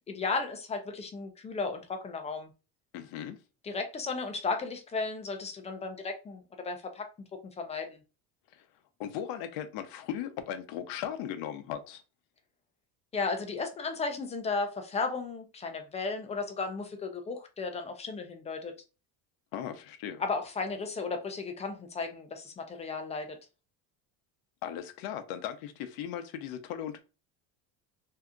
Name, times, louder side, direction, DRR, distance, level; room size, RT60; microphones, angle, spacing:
voice 1, 0.1-2.5 3.6-8.0 13.1-18.7 20.2-23.4, left 4 dB, 20° left, 0.4 m, -34 dB
voice 2, 2.9-3.4 8.5-8.7 9.0-12.0 19.5-20.2 24.6-27.0, left 10 dB, 65° left, 0.7 m, -37 dB
2.7 x 2.3 x 3.5 m
cardioid pair, 150°, 39 cm